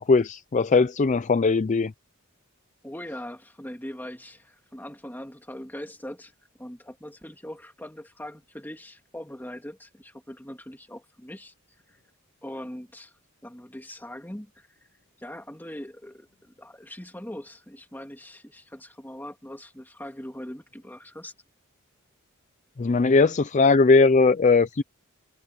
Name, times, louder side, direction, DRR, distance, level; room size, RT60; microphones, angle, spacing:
voice 1, 0.0-1.9 22.8-24.8, left 4 dB, 35° left, 0.4 m, -19 dB
voice 2, 2.8-6.3 6.6-11.5 11.9-12.0 12.4-13.1 13.4-14.7 15.2-21.3, left 1 dB, 10° left, 2.1 m, -41 dB
head